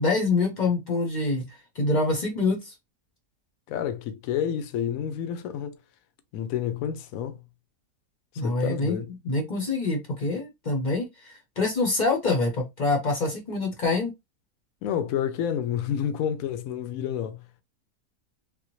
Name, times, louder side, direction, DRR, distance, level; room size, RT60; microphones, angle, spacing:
voice 1, 0.0-1.4 1.8-2.7 8.4-9.0 9.2-14.1, left 3 dB, 40° left, 0.6 m, -25 dB
voice 2, 3.7-5.8 6.3-7.4 8.4-9.1 14.8-17.5, left 9 dB, 70° left, 0.9 m, -29 dB
3.4 x 2.1 x 3.0 m
omnidirectional pair, 1.6 m